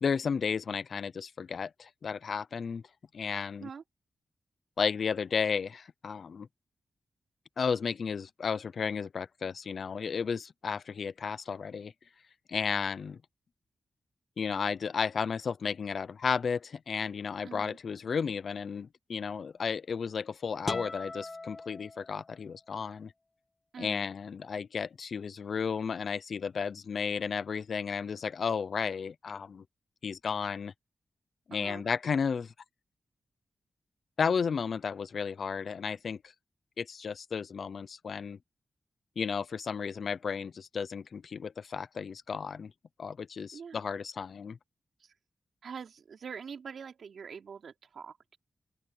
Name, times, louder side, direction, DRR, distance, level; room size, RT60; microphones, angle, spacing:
voice 1, 0.0-2.8 3.1-3.7 4.8-6.5 7.6-11.9 12.5-13.2 14.4-23.1 23.8-29.6 30.0-30.7 31.5-32.5 34.2-36.2 36.8-38.4 39.2-42.7 43.0-44.6, left 6 dB, 70° left, 0.7 m, -33 dB
voice 2, 17.4-17.8 23.7-24.1 31.5-31.9 43.5-43.8 45.6-48.4, right 6 dB, 80° right, 3.8 m, -44 dB
sound 1, 20.6-22.6, left 3 dB, 35° left, 1.5 m, -40 dB
open air
cardioid pair, 60°, 0 cm